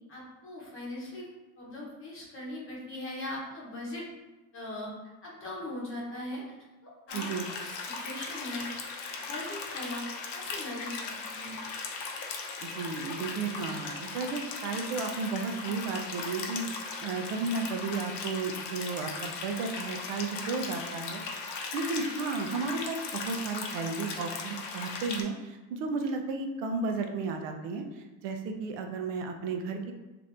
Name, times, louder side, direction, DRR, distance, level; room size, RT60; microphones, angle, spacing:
voice 1, 0.1-1.3 1.6-4.1 4.5-4.9 5.2-6.4 6.8-8.6 9.2-10.0 10.3-11.6, left 1 dB, 30° left, -4 dB, 0.9 m, -40 dB
sound 1, 7.1-25.2, left 4 dB, 70° left, 0.6 m, -38 dB
voice 2, 7.1-7.5 12.6-21.2 21.7-27.8 28.2-29.9, right 4 dB, 65° right, 5 dB, 0.6 m, -33 dB
2.8 x 2.5 x 3.3 m, 1.1 s
cardioid pair, 160°, 43 cm